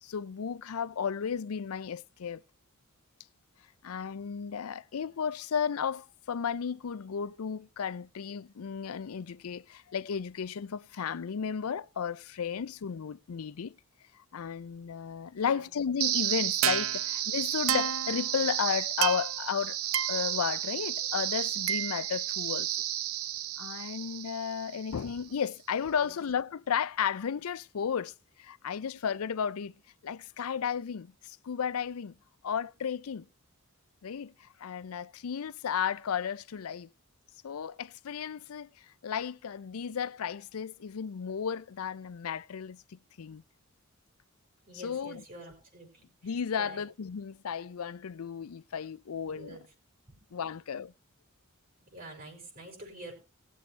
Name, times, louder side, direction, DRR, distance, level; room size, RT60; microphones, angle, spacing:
voice 1, 0.0-2.4 3.8-13.8 14.1-19.8 20.1-22.8 23.6-29.7 30.0-32.1 32.4-33.3 34.0-36.9 37.4-43.4 44.8-45.2 46.2-49.6 50.3-50.9, left 7 dB, 85° left, 0.5 m, -34 dB
sound 1, 16.0-25.0, right 11 dB, 75° right, 0.6 m, -31 dB
voice 2, 44.6-45.9 46.2-46.8 49.2-49.6 50.1-50.2 51.8-53.1, right 1 dB, 45° right, 6.0 m, -47 dB
20.0 x 7.5 x 3.3 m
head